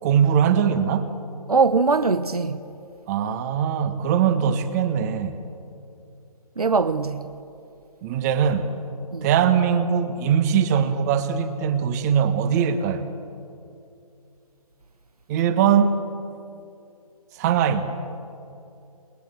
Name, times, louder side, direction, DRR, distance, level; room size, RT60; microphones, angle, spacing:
voice 1, 0.0-1.1 3.1-5.3 8.0-8.7 9.2-13.1 15.3-16.0 17.4-18.0, right 7 dB, 25° right, 1.5 m, -21 dB
voice 2, 1.5-2.6 6.6-7.2 9.1-9.3, right 4 dB, 75° right, 1.1 m, -21 dB
29.5 x 20.5 x 7.9 m
figure-of-eight pair, 140°, 19 cm